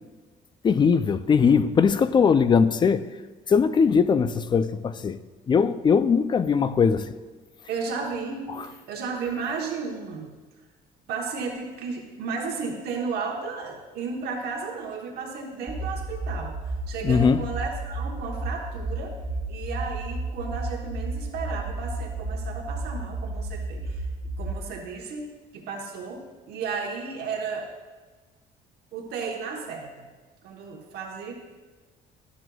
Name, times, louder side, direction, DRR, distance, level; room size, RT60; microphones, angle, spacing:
voice 1, 0.6-3.1 3.5-5.2 5.5-7.1 8.5-8.7 17.0-17.4, left 6 dB, 25° left, 0.3 m, -20 dB
voice 2, 7.7-10.3 11.1-16.6 16.9-19.1 19.5-24.0 24.4-27.7 28.9-30.1 30.4-31.3, right 5 dB, 75° right, 1.0 m, -33 dB
sound 1, 15.7-24.5, right 2 dB, 25° right, 0.8 m, -32 dB
12.5 x 6.1 x 2.3 m
cardioid pair, 110°, 17 cm